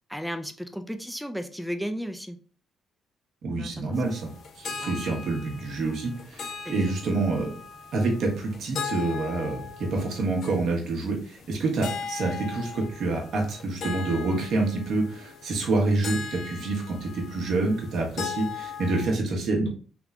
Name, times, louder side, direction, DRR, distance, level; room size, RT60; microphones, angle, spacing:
voice 1, 0.1-2.4 3.6-4.2 4.8-4.9 6.6-6.9, equal, ahead, 8 dB, 0.4 m, -35 dB
voice 2, 3.4-4.3 4.6-7.5 7.9-19.7, right 2 dB, 70° right, 0 dB, 1.0 m, -27 dB
sound 1, 3.9-19.1, left 6 dB, 65° left, 0.4 m, -39 dB
3.5 x 3.1 x 2.4 m, 0.41 s
cardioid pair, 90°, 0 cm